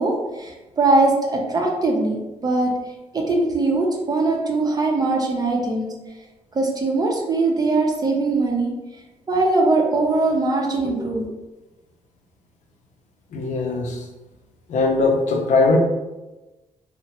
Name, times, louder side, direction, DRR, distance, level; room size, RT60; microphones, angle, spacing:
voice 1, 0.0-2.7 3.1-5.9 6.5-8.7 9.3-11.3, right 2 dB, 30° right, 0 dB, 0.6 m, -21 dB
voice 2, 13.3-14.0 14.7-15.8, left 3 dB, 70° left, 2 dB, 0.5 m, -20 dB
2.9 x 2.1 x 2.8 m, 1.1 s
cardioid pair, 105°, 13 cm